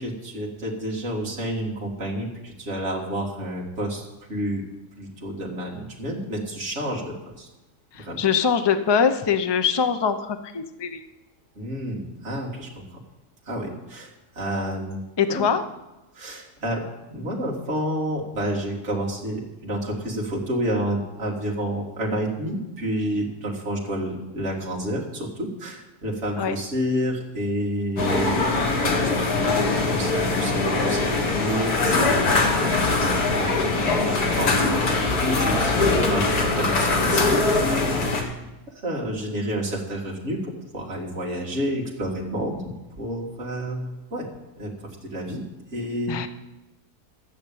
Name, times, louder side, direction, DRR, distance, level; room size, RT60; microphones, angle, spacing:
voice 1, 0.0-4.6 5.0-7.5 7.9-8.2 11.5-13.0 13.5-15.0 15.3-15.5 16.1-16.8 17.1-29.5 29.8-34.9 35.2-38.4 38.8-42.6 43.0-44.3 44.6-44.7 45.0-45.4 45.7-46.2, equal, 45° right, -3 dB, 2.6 m, -29 dB
voice 2, 7.9-11.0 15.2-15.6 26.4-26.6 46.1-46.3, left 7 dB, 35° left, 9 dB, 0.4 m, -23 dB
sound 1, 28.0-38.2, left 3 dB, 85° left, 2.1 m, -22 dB
13.5 x 6.8 x 8.6 m, 1.0 s
omnidirectional pair, 1.6 m